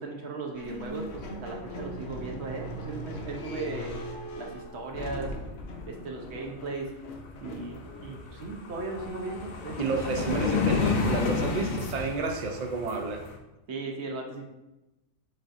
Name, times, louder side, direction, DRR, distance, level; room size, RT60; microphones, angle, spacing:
voice 1, 0.0-3.9 4.4-5.3 5.9-6.9 7.4-9.9 13.7-14.4, right 3 dB, 55° right, 1 dB, 0.9 m, -37 dB
sound 1, 0.6-9.6, equal, 60° left, 0.7 m, -40 dB
sound 2, 7.3-7.4 7.6-13.4, left 4 dB, 75° left, 1.1 m, -30 dB
voice 2, 9.8-13.2, right 3 dB, 75° right, 3 dB, 0.3 m, -30 dB
7.5 x 2.5 x 2.5 m, 0.98 s
omnidirectional pair, 1.4 m